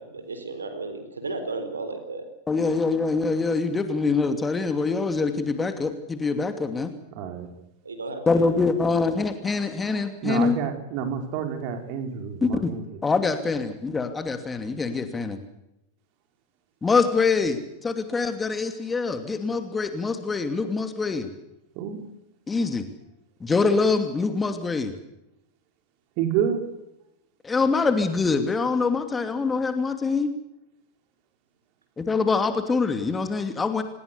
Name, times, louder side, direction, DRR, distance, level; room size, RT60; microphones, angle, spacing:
voice 1, 0.0-2.3 7.8-8.5, right 3 dB, 75° right, 9 dB, 4.0 m, -34 dB
voice 2, 2.5-6.9 8.3-10.6 12.4-12.7 13.0-15.4 16.8-21.3 22.5-22.9 23.4-24.9 27.4-30.3 32.0-33.8, left 4 dB, 15° left, 8 dB, 2.7 m, -24 dB
voice 3, 7.1-7.5 10.2-12.8 21.7-22.0 26.2-26.6, right 8 dB, 45° right, 5 dB, 4.7 m, -28 dB
27.5 x 20.0 x 7.0 m, 0.87 s
figure-of-eight pair, 90°, 0 cm